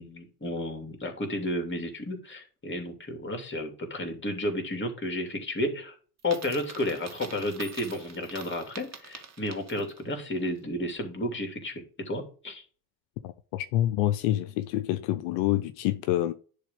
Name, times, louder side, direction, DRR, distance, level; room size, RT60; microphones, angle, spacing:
voice 1, 0.0-5.9 6.2-12.6, left 1 dB, 25° left, 3.0 m, -32 dB
Coin (dropping), 6.2-10.1, right 6 dB, 35° right, 2.1 m, -46 dB
voice 2, 13.2-16.3, left 13 dB, 70° left, 0.7 m, -27 dB
10.5 x 3.5 x 5.3 m
hypercardioid pair, 60°, 47 cm